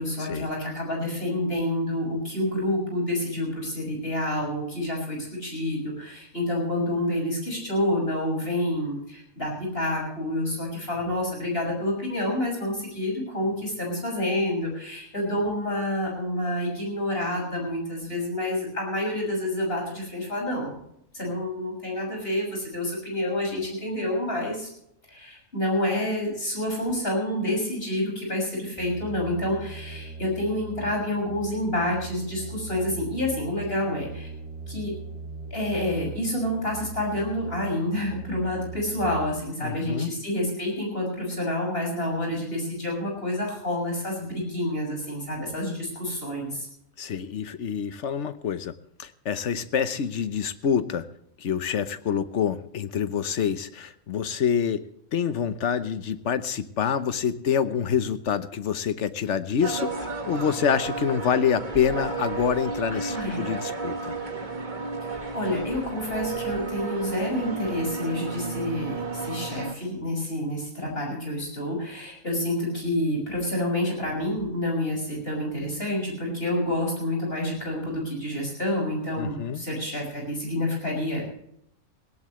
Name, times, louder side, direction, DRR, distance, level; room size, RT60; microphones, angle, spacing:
voice 1, 0.0-20.8 21.1-24.7 25.1-34.3 34.7-34.9 35.5-46.7 62.9-63.5 65.0-81.2, left 1 dB, 45° left, 0 dB, 6.7 m, -28 dB
sound 1, 28.8-39.3, right 3 dB, 5° right, 5.7 m, -39 dB
voice 2, 39.6-40.1 47.0-48.7 49.0-51.1 51.4-54.8 55.1-64.0 79.2-79.6, left 7 dB, 60° left, 12 dB, 1.2 m, -26 dB
sound 2, 59.6-69.7, right 4 dB, 35° right, 1.7 m, -32 dB
18.5 x 17.5 x 3.2 m, 0.74 s
omnidirectional pair, 1.4 m